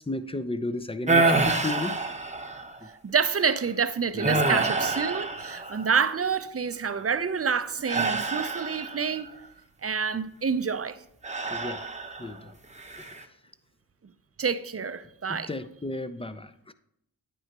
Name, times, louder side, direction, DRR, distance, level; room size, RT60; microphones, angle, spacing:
voice 1, 0.0-2.0 2.8-2.9 4.1-4.6 11.5-11.9 12.2-12.6 12.9-13.1 15.3-16.7, left 2 dB, 15° left, 0.6 m, -34 dB
sound 1, 1.1-2.8 3.3-3.6 4.2-6.0 7.9-9.2 11.2-12.3 12.8-13.2, right 3 dB, 15° right, 1.0 m, -27 dB
voice 2, 3.0-9.3 9.8-11.0 14.4-15.5, right 6 dB, 35° right, 0.6 m, -28 dB
9.9 x 9.0 x 3.0 m
cardioid pair, 40°, 43 cm